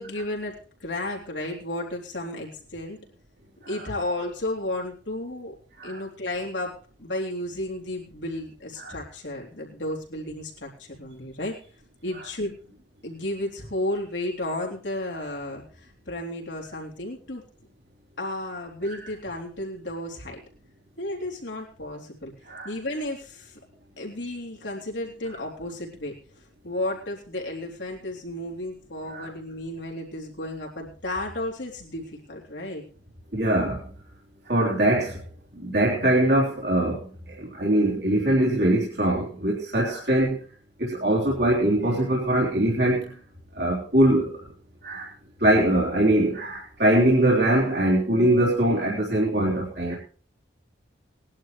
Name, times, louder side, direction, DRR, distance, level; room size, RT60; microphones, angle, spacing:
voice 1, 0.0-3.0 3.7-5.5 5.8-11.5 12.0-12.6 13.0-17.4 18.2-20.4 21.0-22.3 22.6-23.6 24.0-26.1 26.6-32.8, left 1 dB, 75° left, -1 dB, 3.6 m, -33 dB
voice 2, 33.3-33.9 34.5-35.2 35.5-40.4 40.8-43.2 43.6-44.4 44.8-45.1 45.4-50.0, right 1 dB, 60° right, -5 dB, 3.4 m, -22 dB
20.0 x 11.5 x 3.2 m, 0.41 s
head